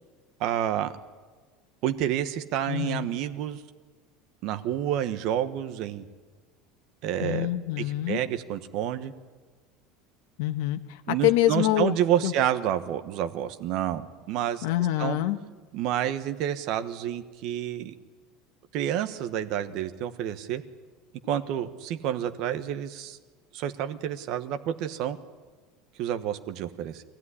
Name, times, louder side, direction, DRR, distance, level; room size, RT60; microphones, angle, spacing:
voice 1, 0.4-0.9 1.8-3.6 4.4-6.1 7.0-7.5 7.8-9.1 11.1-14.6 15.0-15.2 15.7-17.9 18.7-20.6 21.3-23.2 23.5-25.2 26.0-27.0, right 11 dB, 45° right, 9 dB, 1.2 m, -29 dB
voice 2, 2.7-3.1 7.2-8.2 10.4-12.0 12.2-12.3 14.6-15.4, left 15 dB, 70° left, 7 dB, 1.2 m, -26 dB
23.5 x 16.5 x 9.9 m, 1.4 s
cardioid pair, 170°, 0 cm